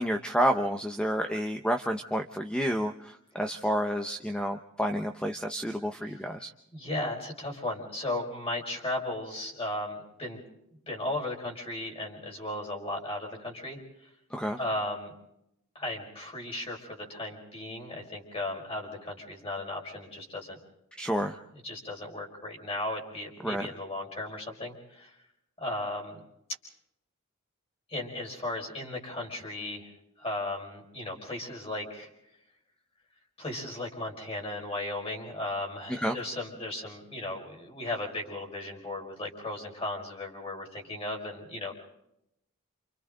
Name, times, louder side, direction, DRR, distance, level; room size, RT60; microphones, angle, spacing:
voice 1, 0.0-6.5 14.3-14.6 21.0-21.4 23.4-23.7 36.0-36.2, equal, 5° left, 5 dB, 0.9 m, -29 dB
voice 2, 6.7-10.4 10.9-14.1 14.6-15.1 15.7-20.6 21.5-25.2 25.6-26.2 27.9-29.9 30.2-32.1 33.4-41.7, left 1 dB, 30° left, 0 dB, 5.4 m, -36 dB
29.0 x 28.0 x 3.9 m, 0.81 s
head